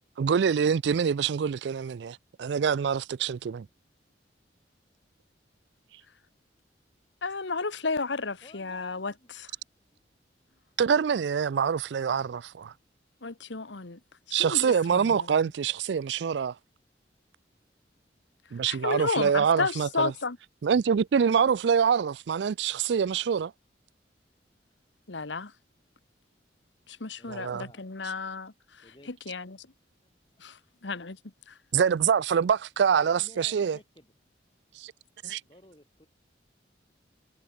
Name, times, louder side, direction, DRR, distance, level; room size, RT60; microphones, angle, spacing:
voice 1, 0.2-3.7 10.8-12.7 14.3-16.5 18.5-20.1 20.6-23.5 27.3-27.6 31.7-33.8 34.8-34.9 35.2-35.4, right 7 dB, 70° right, 0.4 m, -25 dB
voice 2, 7.2-9.1 13.2-14.0 14.3-15.3 18.7-20.4 25.1-25.5 26.9-28.5 29.1-29.7 30.4-31.2 31.5-31.6 35.2-35.3, left 4 dB, 80° left, 1.4 m, -32 dB
voice 3, 8.4-9.3 9.9-10.0 14.3-14.4 27.2-27.8 28.8-29.2 30.0-30.2 33.0-34.1 35.4-36.1, left 1 dB, 25° left, 3.6 m, -54 dB
head